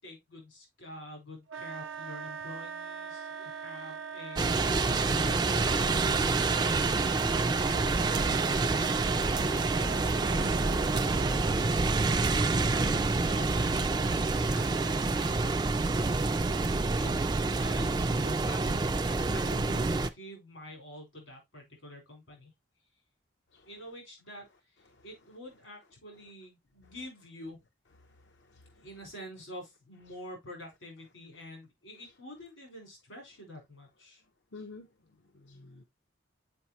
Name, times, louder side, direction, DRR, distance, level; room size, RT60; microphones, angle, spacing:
voice 1, 0.0-6.4 7.6-9.4 9.6-11.1 12.3-15.5 15.9-16.4 17.0-17.3 17.6-22.5 23.7-27.6 28.8-34.2, equal, 85° left, 4.3 m, -47 dB
Wind instrument woodwind instrument, 1.5-11.6, right 6 dB, 80° right, 0.6 m, -41 dB
sound 1, 4.4-20.1, right 3 dB, 20° right, 0.3 m, -27 dB
voice 2, 28.0-28.9 34.5-35.8, left 3 dB, 60° left, 0.7 m, -51 dB
6.9 x 4.9 x 2.9 m
head